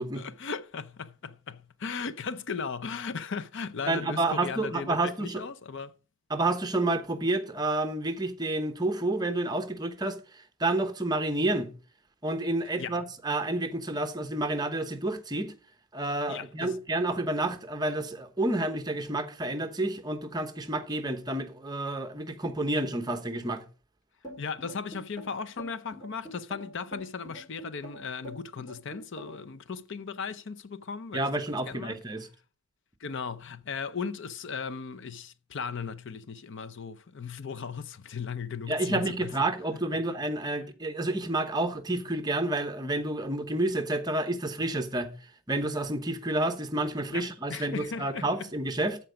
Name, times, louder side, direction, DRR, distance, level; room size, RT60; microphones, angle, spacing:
voice 1, 0.1-5.9 12.8-13.0 16.3-16.8 24.4-32.0 33.0-39.3 47.1-48.3, left 5 dB, 60° left, 0.6 m, -37 dB
voice 2, 3.9-5.4 6.3-11.7 12.2-15.5 15.9-23.6 31.1-32.3 38.7-45.1 45.5-49.0, right 2 dB, 20° right, 0.9 m, -29 dB
sound 1, 24.2-29.5, right 1 dB, 20° left, 4.2 m, -44 dB
13.5 x 4.6 x 5.0 m
head